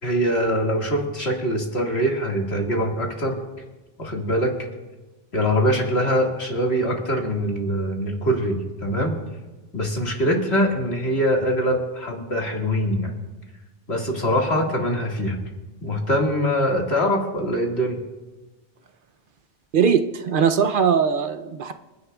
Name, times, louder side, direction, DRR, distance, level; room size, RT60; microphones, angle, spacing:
voice 1, 0.0-3.4 4.0-4.5 5.3-9.2 9.7-13.1 13.9-15.4 15.8-18.0, equal, 80° left, 0 dB, 2.3 m, -23 dB
voice 2, 19.7-21.7, right 7 dB, 60° right, 8 dB, 0.8 m, -20 dB
28.0 x 10.0 x 2.3 m, 1.1 s
omnidirectional pair, 1.1 m